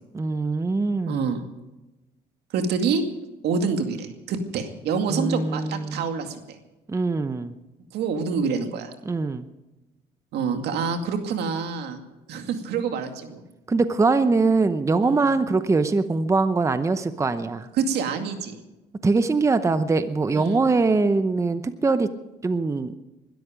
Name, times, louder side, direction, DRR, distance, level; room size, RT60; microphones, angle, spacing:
voice 1, 0.1-1.4 5.1-6.0 6.9-7.5 9.0-9.5 13.7-17.7 19.0-22.1 22.4-22.9, right 3 dB, 15° right, 11 dB, 0.8 m, -22 dB
voice 2, 1.1-1.4 2.5-3.0 3.4-6.6 7.9-8.9 10.3-12.0 12.3-13.4 15.0-15.3 17.8-18.6 20.3-20.6, right 5 dB, 75° right, 6 dB, 2.3 m, -27 dB
21.0 x 13.0 x 5.1 m, 1.0 s
cardioid pair, 110°, 17 cm